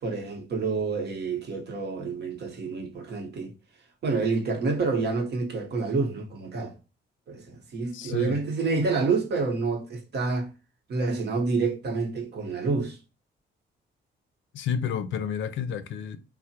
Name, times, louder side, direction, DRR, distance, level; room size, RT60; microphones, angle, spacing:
voice 1, 0.0-3.5 4.0-6.8 7.3-10.5 10.9-13.0, right 4 dB, 55° right, 1.0 m, -28 dB
voice 2, 7.9-8.4 14.5-16.2, left 7 dB, 70° left, 0.5 m, -30 dB
3.3 x 2.1 x 2.8 m
cardioid pair, 90°, 20 cm